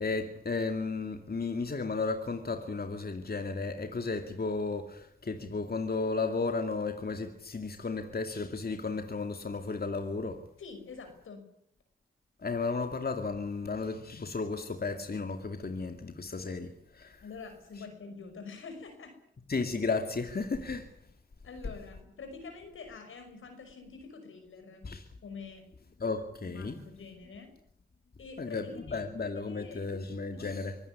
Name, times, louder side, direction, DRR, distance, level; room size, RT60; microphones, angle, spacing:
voice 1, 0.0-10.4 12.4-17.2 19.5-20.9 24.8-25.0 26.0-26.8 28.4-30.8, left 4 dB, 50° left, 2.4 m, -34 dB
voice 2, 10.6-11.4 17.2-19.1 21.4-24.9 25.2-25.6 26.4-27.5 28.2-29.8 30.3-30.6, left 4 dB, 90° left, 5.9 m, -46 dB
24.5 x 15.5 x 9.7 m
cardioid pair, 45°, 20 cm